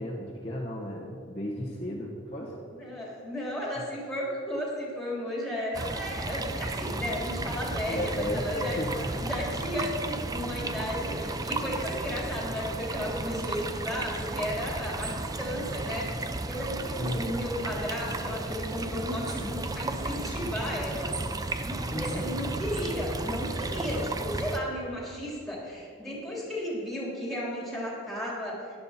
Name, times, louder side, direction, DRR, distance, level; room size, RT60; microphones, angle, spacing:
voice 1, 0.0-2.5 2.9-3.0 7.9-9.4 17.0-17.3 21.9-22.3, left 1 dB, 30° left, -3 dB, 1.0 m, -34 dB
voice 2, 2.8-8.8 9.2-16.1 16.5-21.2 21.6-28.6, equal, ahead, -4 dB, 2.9 m, -34 dB
sound 1, 5.7-24.6, right 2 dB, 20° right, 0.4 m, -34 dB
13.0 x 11.0 x 4.2 m, 2.5 s
head